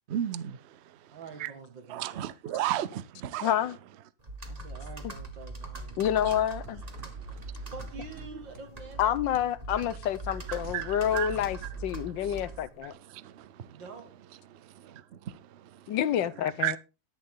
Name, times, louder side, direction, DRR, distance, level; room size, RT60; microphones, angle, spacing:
voice 1, 0.1-0.5 1.4-1.5 1.9-3.0 3.3-3.5 10.7-11.3 16.6-16.8, right 12 dB, 65° right, 0.6 m, -31 dB
voice 2, 1.1-2.3 4.4-6.1 7.4-9.2 13.7-14.1, right 4 dB, 85° right, 2.8 m, -46 dB
voice 3, 3.4-3.8 6.0-6.8 9.0-12.9 15.9-16.8, left 10 dB, 85° left, 1.5 m, -28 dB
Computer keyboard, 4.2-12.8, right 2 dB, 25° right, 1.5 m, -41 dB
sound 1, 5.9-12.5, right 3 dB, 45° right, 1.8 m, -53 dB
11.0 x 10.5 x 3.8 m
omnidirectional pair, 2.0 m